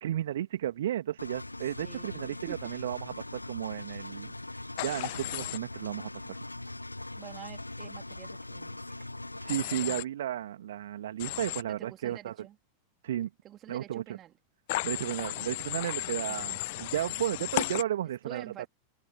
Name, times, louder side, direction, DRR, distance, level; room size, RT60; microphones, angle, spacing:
voice 1, 0.0-4.3 4.8-6.4 9.4-12.3 13.0-13.3 13.7-14.0 14.8-18.5, right 11 dB, 60° right, 2.2 m, -33 dB
Engine, 1.2-9.6, left 2 dB, 85° left, 0.7 m, -41 dB
voice 2, 1.8-2.8 7.2-9.1 11.7-12.6 13.4-14.3 18.2-18.7, right 12 dB, 30° right, 3.9 m, -48 dB
Human voice / Train, 4.8-5.6 9.5-10.0 11.2-11.6 14.7-17.8, left 21 dB, 50° left, 0.4 m, -34 dB
figure-of-eight pair, 90°, 0 cm